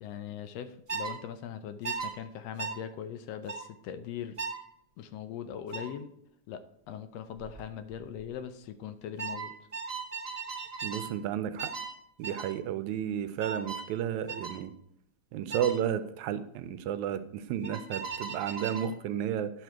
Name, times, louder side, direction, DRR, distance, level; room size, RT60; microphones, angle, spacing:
voice 1, 0.0-4.4 5.0-6.1 6.5-9.5, left 9 dB, 75° left, 10 dB, 1.6 m, -40 dB
sound 1, 0.9-1.2 1.8-2.1 2.6-2.8 3.5-3.7 4.4-4.6 5.7-5.9 7.4-7.6 7.9-8.3 9.2-11.1 11.6-11.9 12.2-12.5 13.4-13.9 14.3-14.6 15.5-15.8 17.6-18.9, right 5 dB, 20° right, 1.7 m, -37 dB
voice 2, 10.8-11.7 12.2-14.7 15.3-19.5, right 9 dB, 80° right, 11 dB, 1.9 m, -32 dB
10.0 x 6.7 x 4.6 m, 0.75 s
omnidirectional pair, 3.5 m